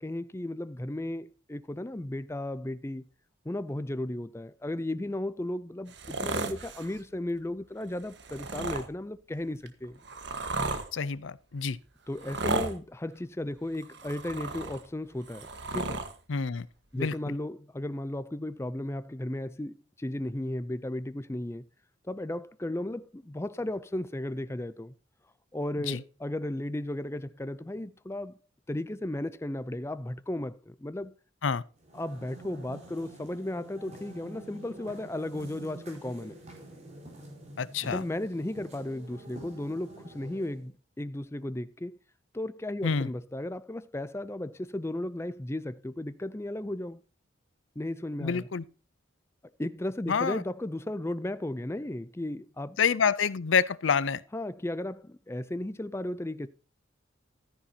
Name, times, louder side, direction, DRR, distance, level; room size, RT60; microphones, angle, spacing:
voice 1, 0.0-3.0 3.5-10.0 12.1-15.5 15.7-16.1 16.9-21.7 22.0-24.9 25.5-28.4 28.7-31.1 31.9-36.4 37.8-42.0 42.3-47.0 47.8-48.5 49.6-52.8 54.3-56.5, left 1 dB, 15° left, 0.4 m, -35 dB
sound 1, 5.9-7.0 8.1-8.9 9.7-10.9 12.1-12.8 13.7-14.9 15.2-16.1 17.1-17.2, right 3 dB, 60° right, 1.4 m, -34 dB
voice 2, 10.9-11.8 16.3-16.7 17.0-17.1 25.9-26.0 31.4-31.6 37.6-38.0 42.8-43.1 48.2-48.6 50.1-50.4 52.8-54.2, left 6 dB, 70° left, 0.6 m, -27 dB
sound 2, 31.8-40.7, right 2 dB, 35° right, 4.4 m, -48 dB
14.0 x 10.0 x 2.8 m
head